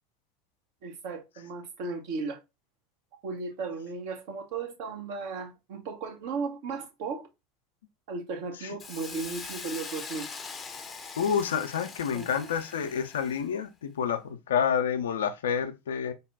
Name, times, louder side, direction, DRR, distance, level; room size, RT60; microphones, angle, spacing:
voice 1, 0.8-2.4 3.2-7.3 8.1-10.3 12.1-12.3, right 4 dB, 60° right, 0.8 m, -35 dB
Hiss, 8.8-13.5, left 5 dB, 25° left, 0.6 m, -42 dB
voice 2, 11.2-16.1, left 7 dB, 75° left, 0.4 m, -28 dB
4.0 x 2.1 x 3.5 m
figure-of-eight pair, 75°, 0 cm